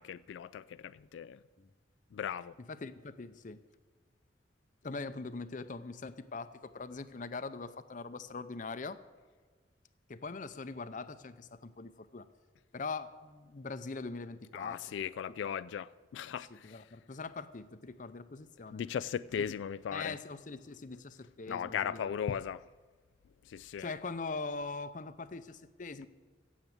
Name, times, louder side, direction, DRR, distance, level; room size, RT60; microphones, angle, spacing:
voice 1, 0.0-1.4 2.1-2.5 14.5-16.9 18.7-20.2 21.5-22.6 23.5-23.9, left 8 dB, 90° left, 0.3 m, -37 dB
voice 2, 2.6-3.6 4.8-9.0 10.1-12.3 12.7-14.9 15.4-15.6 16.5-18.8 19.4-19.5 19.9-22.0 23.8-26.1, left 4 dB, 45° left, 0.6 m, -42 dB
16.0 x 7.3 x 8.0 m
head